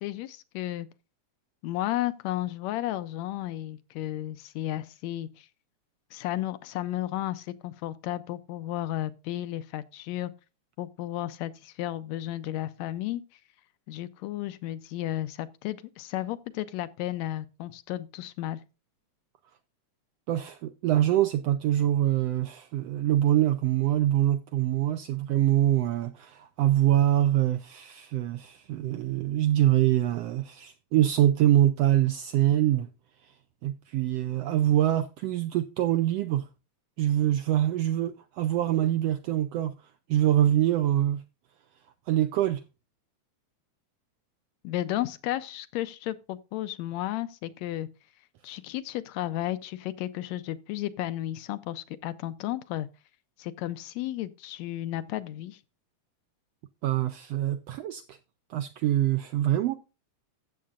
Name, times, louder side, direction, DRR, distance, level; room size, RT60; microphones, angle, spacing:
voice 1, 0.0-0.9 1.6-5.5 6.1-10.3 10.8-13.2 13.9-18.6 44.6-47.9 48.4-52.9 53.4-55.6, left 14 dB, 80° left, 1.8 m, -33 dB
voice 2, 20.3-32.9 33.6-36.5 37.0-39.7 40.1-41.2 42.1-42.6 56.8-58.2 58.5-59.7, right 12 dB, 80° right, 1.5 m, -24 dB
14.0 x 7.5 x 2.4 m
omnidirectional pair, 3.4 m